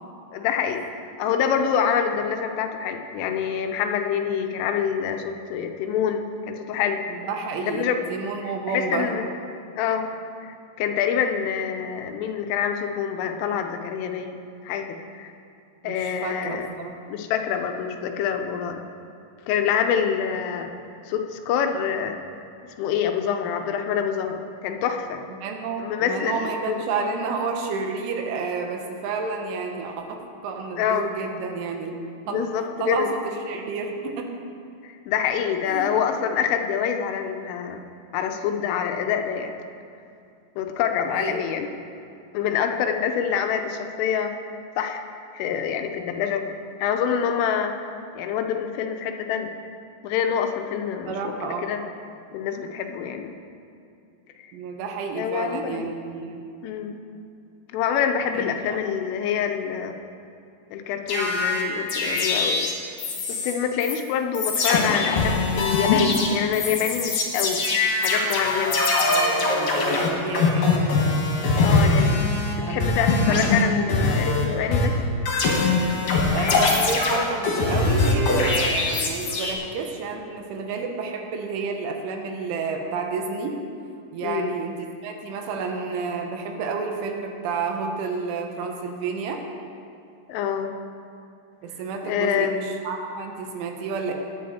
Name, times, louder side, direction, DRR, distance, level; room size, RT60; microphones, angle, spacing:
voice 1, 0.3-7.0 7.6-8.0 8.4-9.3 9.8-10.1 10.4-14.4 14.6-15.3 15.8-16.7 17.1-18.8 19.5-20.7 21.1-22.2 22.8-25.2 25.8-26.8 30.8-31.1 32.3-33.1 34.8-37.8 38.1-39.5 40.6-41.7 42.3-44.3 44.8-45.0 45.3-46.5 46.8-47.7 48.1-49.5 50.0-51.3 51.6-51.8 52.3-53.3 54.4-54.5 55.1-55.9 56.6-57.0 57.7-60.0 60.7-62.7 63.3-67.6 68.0-68.8 71.6-72.2 72.6-74.9 84.2-84.5 90.3-90.7 92.0-92.5, left 8 dB, 80° left, 5 dB, 3.3 m, -26 dB
voice 2, 7.1-9.1 15.8-16.9 25.4-31.9 32.3-32.5 32.8-34.3 35.7-35.9 41.1-41.4 51.1-51.7 54.5-56.5 58.3-58.5 69.1-71.0 72.6-72.9 76.3-83.6 84.1-89.4 91.6-94.1, right 4 dB, 75° right, 3 dB, 3.4 m, -30 dB
sound 1, 61.1-63.5 63.8-63.9 64.3-72.5 72.8-74.4 74.7-79.5, left 3 dB, 55° left, 2.8 m, -22 dB
19.0 x 10.0 x 4.3 m, 2.6 s
omnidirectional pair, 5.8 m